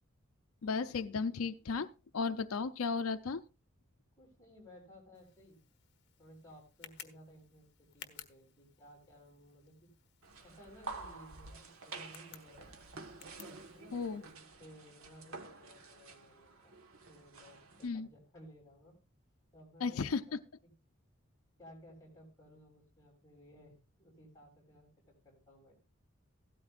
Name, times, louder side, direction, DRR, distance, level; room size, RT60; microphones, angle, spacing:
voice 1, 0.6-3.4 13.9-14.2 17.8-18.1 19.8-20.4, left 4 dB, 85° left, 10 dB, 0.5 m, -35 dB
voice 2, 4.2-5.6 6.2-9.9 10.4-12.7 13.7-16.7 17.1-19.0 19.5-20.3 21.6-25.8, equal, 15° left, -1 dB, 6.8 m, -58 dB
Tick, 5.1-14.3, left 9 dB, 50° left, 1.3 m, -58 dB
sound 1, 10.2-17.9, right 3 dB, 85° right, 1.4 m, -50 dB
16.0 x 13.0 x 2.4 m, 0.31 s
head